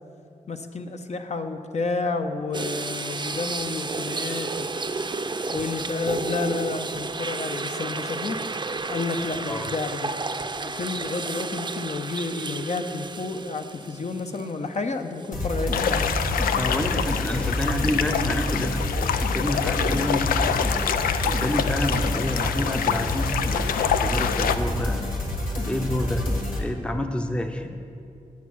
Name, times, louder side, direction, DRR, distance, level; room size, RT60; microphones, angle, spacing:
voice 1, 0.5-4.7 5.5-8.4 8.9-10.1 10.6-16.1, left 3 dB, 50° left, 6 dB, 0.9 m, -30 dB
sound 1, 2.5-14.8 15.2-15.3 17.6-17.8, right 3 dB, 30° right, 0.6 m, -32 dB
sound 2, 15.3-26.6, left 1 dB, 70° left, 1.7 m, -28 dB
sound 3, 15.7-24.5, left 8 dB, 90° left, 0.4 m, -26 dB
voice 2, 16.6-20.6 21.2-25.0 25.6-26.3 26.6-27.7, left 1 dB, 5° left, 5 dB, 0.7 m, -29 dB
9.7 x 7.1 x 6.3 m, 2.6 s
cardioid pair, 50°, 15 cm